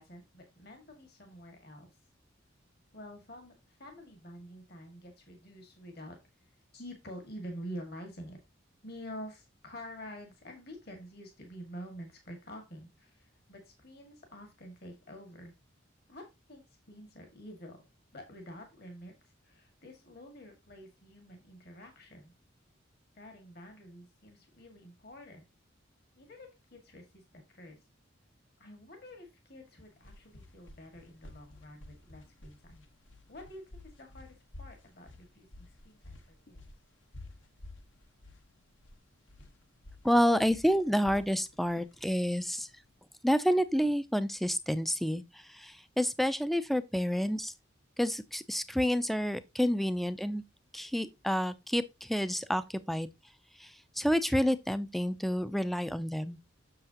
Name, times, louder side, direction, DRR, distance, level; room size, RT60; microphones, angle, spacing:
voice 1, 0.0-1.9 2.9-6.2 6.7-8.4 8.8-15.5 16.1-16.2 16.5-17.8 18.1-22.4 23.2-25.5 26.2-27.8 28.6-32.9 33.3-36.6, equal, 55° left, 1.9 m, -48 dB
sound 1, 29.7-43.0, left 2 dB, 75° left, 1.3 m, -52 dB
voice 2, 40.0-42.7 43.2-47.5 48.0-50.4 50.7-53.1 53.6-56.4, equal, ahead, 0.4 m, -29 dB
7.7 x 6.5 x 2.8 m
head